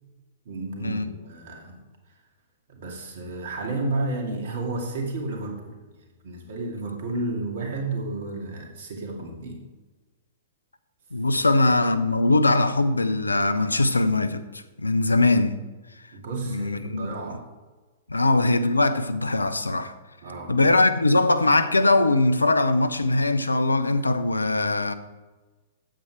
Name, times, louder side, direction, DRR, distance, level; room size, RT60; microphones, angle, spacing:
voice 1, 0.5-1.8 2.7-5.8 6.2-9.6 11.3-11.4 16.1-17.4 18.1-18.3 20.2-20.6, right 2 dB, 60° right, 2.3 m, -32 dB
voice 2, 11.1-14.4 14.8-15.6 16.5-17.1 18.1-19.9 20.5-24.9, left 2 dB, 90° left, 0.6 m, -21 dB
9.0 x 7.9 x 4.6 m
figure-of-eight pair, 110°, 0 cm